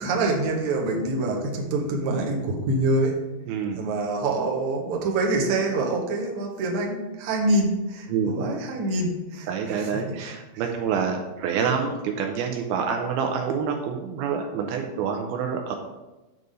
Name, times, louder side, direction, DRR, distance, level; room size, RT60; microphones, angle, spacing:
voice 1, 0.0-3.2 3.7-9.9, right 2 dB, 65° right, -1 dB, 2.2 m, -25 dB
voice 2, 3.5-3.8 8.1-8.3 9.5-15.8, right 6 dB, 80° right, 3 dB, 2.5 m, -27 dB
9.2 x 4.1 x 4.9 m, 1.1 s
omnidirectional pair, 4.4 m